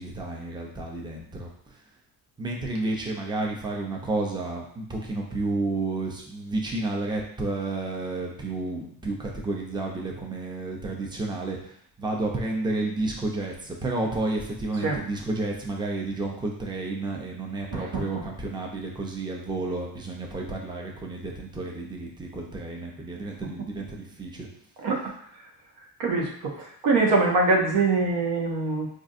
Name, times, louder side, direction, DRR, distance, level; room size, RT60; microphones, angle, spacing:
voice 1, 0.0-1.5 2.4-24.5, right 2 dB, 10° right, -1 dB, 0.6 m, -31 dB
voice 2, 17.7-18.0 24.8-25.1 26.0-28.9, right 3 dB, 85° right, -1 dB, 0.9 m, -24 dB
3.8 x 2.5 x 2.6 m, 0.66 s
cardioid pair, 90°, 41 cm